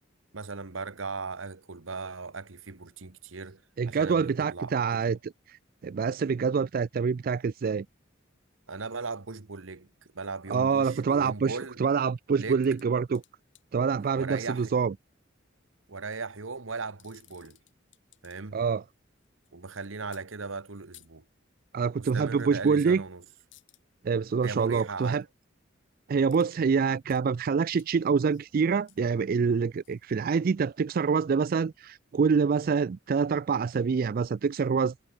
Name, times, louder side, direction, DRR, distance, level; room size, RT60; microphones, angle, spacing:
voice 1, 0.3-3.6 3.9-5.2 8.7-11.8 12.4-12.6 14.1-14.8 15.9-17.6 18.2-18.6 19.5-21.2 22.0-23.2 24.4-25.2, right 4 dB, 85° right, 1.3 m, -38 dB
voice 2, 3.8-5.2 5.5-7.9 10.5-13.2 13.7-14.9 18.5-18.8 21.7-23.0 24.0-25.2 26.1-34.9, right 5 dB, 50° right, 0.3 m, -26 dB
sound 1, 12.6-14.1 15.9-16.2 16.8-18.6 18.9-19.5 20.1-20.2 20.9-21.1 22.4-22.5 22.9-23.1 23.5-23.8 26.3-26.5 26.8-27.2 27.8-27.9 28.3-30.8 31.4-31.5, left 16 dB, 65° left, 4.9 m, -59 dB
head